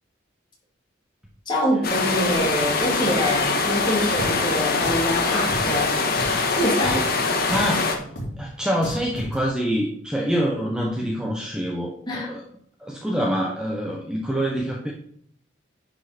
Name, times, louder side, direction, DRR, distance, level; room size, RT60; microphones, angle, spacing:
voice 1, 1.5-5.9 6.5-7.1 12.1-12.3, equal, 25° left, -4 dB, 3.1 m, -25 dB
sound 1, 1.8-8.0, left 4 dB, 50° left, 1.4 m, -23 dB
Drum, 4.2-4.3 4.8-5.1 5.5-5.6 6.1-6.4 6.8-7.0 7.5-7.7 8.2-8.3 8.8-9.3, equal, 65° left, 2.6 m, -32 dB
voice 2, 7.5-8.1 8.4-12.4 12.8-14.9, equal, 5° right, -1 dB, 0.9 m, -26 dB
10.0 x 5.4 x 4.4 m, 0.65 s
head